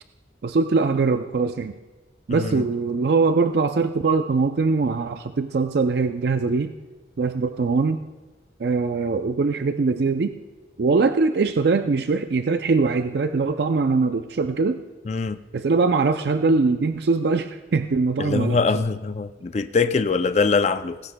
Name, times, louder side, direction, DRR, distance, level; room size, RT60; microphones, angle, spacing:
voice 1, 0.4-1.7 2.3-6.7 7.2-8.0 8.6-10.4 10.8-14.8 15.5-18.8, right 4 dB, 65° right, 0.4 m, -22 dB
voice 2, 2.3-2.6 15.1-15.4 18.2-21.0, left 4 dB, 35° left, 0.3 m, -23 dB
17.5 x 15.5 x 2.2 m
head